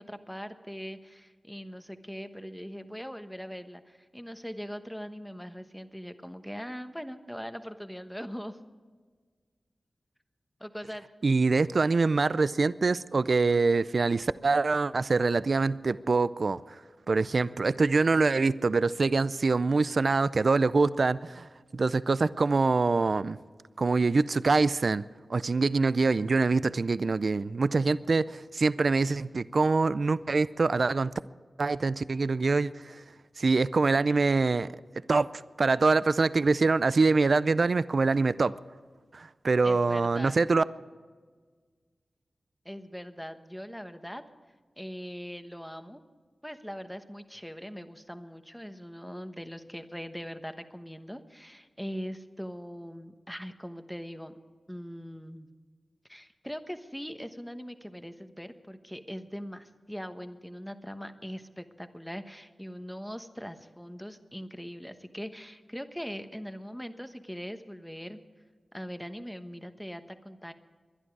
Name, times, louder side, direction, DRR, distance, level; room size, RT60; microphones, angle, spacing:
voice 1, 0.0-8.6 10.6-11.0 39.6-40.4 42.6-44.2 44.8-46.0 46.4-54.3 54.7-55.5 56.1-68.2 68.7-70.5, equal, 5° left, 8 dB, 1.1 m, -41 dB
voice 2, 11.2-16.6 17.1-21.5 21.7-23.4 23.8-25.0 25.3-31.1 31.6-33.0 33.4-34.7 35.1-38.5 39.1-40.6, right 3 dB, 60° right, 17 dB, 0.4 m, -25 dB
21.0 x 11.0 x 4.7 m, 1.5 s
wide cardioid pair, 65°, 0 cm